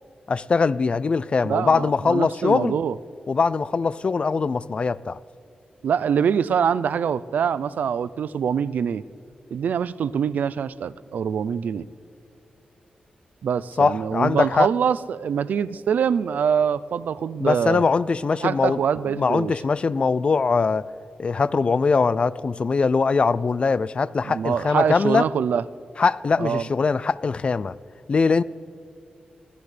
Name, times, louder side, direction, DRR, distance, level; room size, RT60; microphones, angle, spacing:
voice 1, 0.3-2.8 3.3-5.2 13.8-14.7 17.4-18.8 19.1-20.9 21.2-25.2 26.0-27.7 28.1-28.4, left 4 dB, 40° left, 0.4 m, -21 dB
voice 2, 1.4-2.9 5.8-9.0 9.5-11.9 13.4-17.8 18.4-19.5 24.2-25.6 26.4-26.7, right 7 dB, 90° right, 0.5 m, -24 dB
24.0 x 17.0 x 3.3 m
wide cardioid pair, 120°, 3 cm